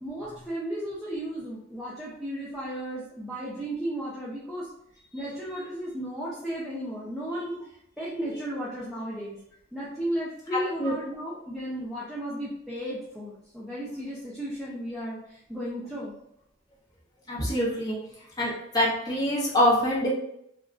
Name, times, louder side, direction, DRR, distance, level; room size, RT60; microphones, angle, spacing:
voice 1, 0.0-4.7 5.1-7.6 8.0-9.4 9.7-16.1, right 1 dB, ahead, -8 dB, 0.5 m, -34 dB
voice 2, 17.3-17.9 18.4-20.1, equal, 20° left, -6 dB, 0.9 m, -24 dB
2.3 x 2.1 x 3.6 m, 0.76 s
head